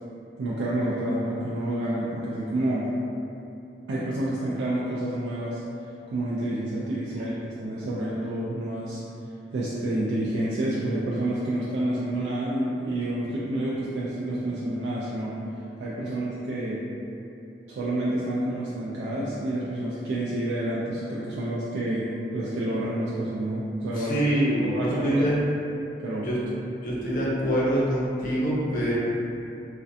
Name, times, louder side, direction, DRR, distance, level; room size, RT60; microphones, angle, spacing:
voice 1, 0.4-2.9 3.9-5.6 6.1-9.0 9.5-15.4 15.8-16.8 17.7-24.1 24.5-25.2 26.0-26.3, right 1 dB, 90° right, -8 dB, 0.3 m, -29 dB
voice 2, 24.0-25.4 26.2-26.4 26.8-28.9, equal, 50° left, -7 dB, 0.5 m, -25 dB
2.4 x 2.1 x 2.6 m, 2.8 s
head